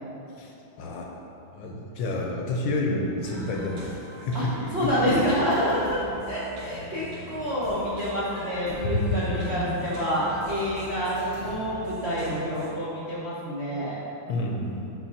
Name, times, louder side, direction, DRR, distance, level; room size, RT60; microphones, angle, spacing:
voice 1, 0.4-1.1 1.5-3.9 4.2-5.1 8.9-9.9 14.3-14.9, left 2 dB, 70° left, 0 dB, 1.3 m, -29 dB
sound 1, 3.2-12.7, right 2 dB, 75° right, 1.8 m, -41 dB
voice 2, 4.7-6.0 6.3-14.0, equal, 50° right, -10 dB, 0.8 m, -27 dB
10.0 x 4.2 x 2.8 m, 2.9 s
omnidirectional pair, 2.3 m